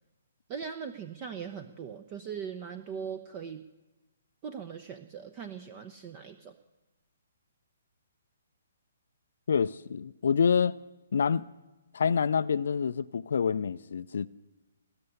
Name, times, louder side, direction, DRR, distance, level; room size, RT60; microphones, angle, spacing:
voice 1, 0.5-3.6 4.4-6.6, right 7 dB, 30° right, 0.8 m, -40 dB
voice 2, 9.5-10.8 11.1-11.4 11.9-14.3, left 6 dB, 60° left, 0.4 m, -27 dB
20.0 x 6.8 x 9.9 m
figure-of-eight pair, 130°, 0 cm